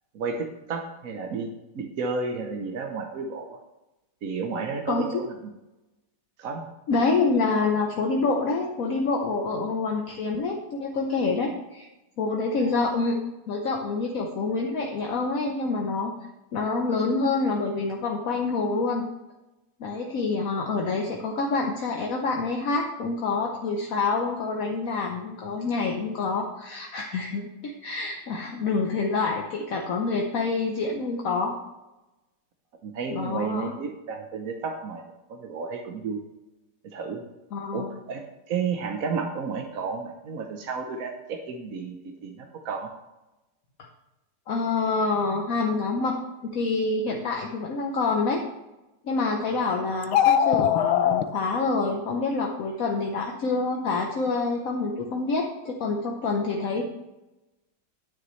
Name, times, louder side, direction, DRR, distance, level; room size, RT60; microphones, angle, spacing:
voice 1, 0.1-3.6 4.2-5.3 6.4-6.7 12.6-12.7 32.8-35.0 35.3-36.2 36.8-37.3 37.7-42.9, right 5 dB, 60° right, 3 dB, 0.9 m, -32 dB
voice 2, 4.9-5.2 6.9-11.9 12.2-13.2 13.5-16.1 16.5-19.0 19.8-31.6 33.1-33.7 37.5-37.9 44.5-48.4 49.0-56.8, left 3 dB, 55° left, 1 dB, 1.0 m, -27 dB
sound 1, 50.0-51.2, left 10 dB, 80° left, 1.4 m, -20 dB
9.7 x 9.4 x 3.2 m, 1.0 s
omnidirectional pair, 2.3 m